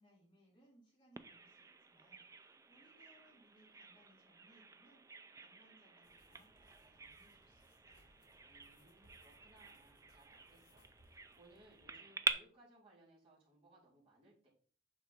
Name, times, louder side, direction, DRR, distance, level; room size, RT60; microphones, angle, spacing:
voice 1, 0.0-8.3, right 1 dB, 25° left, -5 dB, 3.6 m, -69 dB
Bird vocalization bird call bird song, 1.2-12.3, right 4 dB, 15° right, 0.3 m, -47 dB
Pencil On Paper, 6.0-11.9, left 1 dB, 70° left, 2.1 m, -70 dB
voice 2, 8.5-14.5, right 1 dB, 30° right, -9 dB, 3.7 m, -66 dB
6.8 x 5.6 x 3.6 m, 0.44 s
head